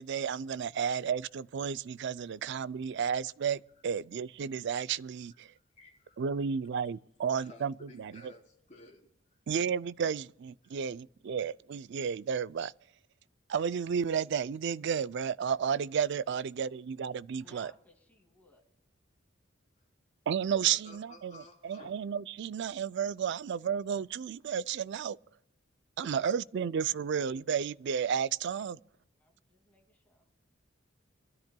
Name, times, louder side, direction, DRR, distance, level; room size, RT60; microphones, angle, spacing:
voice 1, 0.0-5.5 6.2-8.2 9.5-12.7 13.5-17.7 20.3-25.2 26.0-28.8, right 7 dB, 60° right, 0.4 m, -32 dB
voice 2, 5.8-6.4 7.4-9.1 10.6-10.8 16.3-16.4 20.6-21.9 26.0-26.3, left 2 dB, 35° left, 3.7 m, -54 dB
voice 3, 17.4-18.6 29.2-30.6, left 1 dB, 10° left, 2.5 m, -62 dB
26.0 x 13.0 x 2.3 m
head